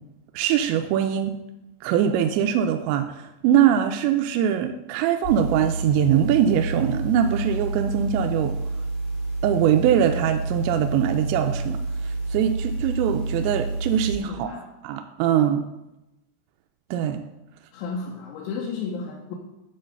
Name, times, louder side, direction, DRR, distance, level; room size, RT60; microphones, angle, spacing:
voice 1, 0.3-1.4 1.8-8.6 9.4-14.5 14.8-15.6 16.9-17.2, right 9 dB, 85° right, 5 dB, 2.7 m, -22 dB
sound 1, 5.2-14.2, right 2 dB, 35° left, 1.5 m, -29 dB
voice 2, 14.3-14.6 17.7-19.3, left 4 dB, 80° left, -2 dB, 3.2 m, -33 dB
11.0 x 3.9 x 6.4 m, 0.95 s
omnidirectional pair, 5.5 m